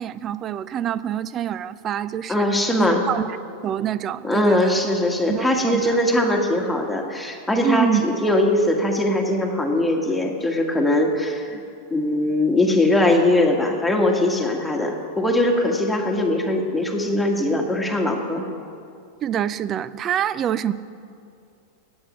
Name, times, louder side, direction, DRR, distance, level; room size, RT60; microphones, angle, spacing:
voice 1, 0.0-2.5 2.8-3.4 3.6-4.8 5.3-6.0 7.6-8.0 19.2-20.7, right 10 dB, 35° right, 17 dB, 0.4 m, -25 dB
voice 2, 2.3-3.0 4.2-11.6 11.9-18.4, left 1 dB, 5° left, 1 dB, 1.6 m, -21 dB
8.8 x 8.0 x 8.6 m, 2.4 s
hypercardioid pair, 105°, 0 cm